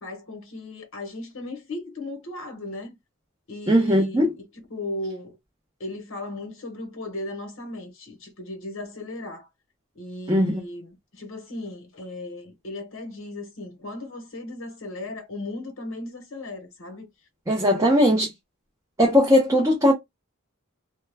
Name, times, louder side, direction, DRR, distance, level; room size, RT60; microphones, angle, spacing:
voice 1, 0.0-2.9 3.5-4.3 4.7-5.4 5.8-9.5 9.9-17.1, left 2 dB, 65° left, 0.9 m, -36 dB
voice 2, 3.7-4.3 10.3-10.6 17.5-18.3 19.0-19.9, equal, 15° right, 0.5 m, -19 dB
2.2 x 2.1 x 3.2 m
head